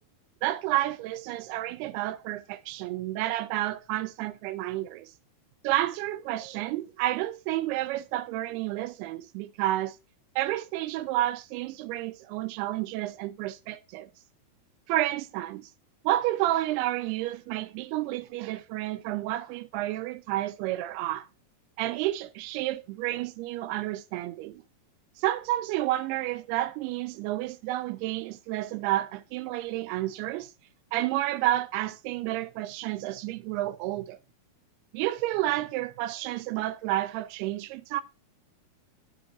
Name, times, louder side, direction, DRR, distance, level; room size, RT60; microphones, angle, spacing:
voice 1, 0.4-5.1 5.6-10.0 10.4-14.1 14.9-15.7 16.0-21.3 21.8-24.6 25.2-30.5 30.9-34.2 34.9-38.0, right 15 dB, 85° right, 2.6 m, -30 dB
9.3 x 7.4 x 2.7 m
omnidirectional pair, 4.5 m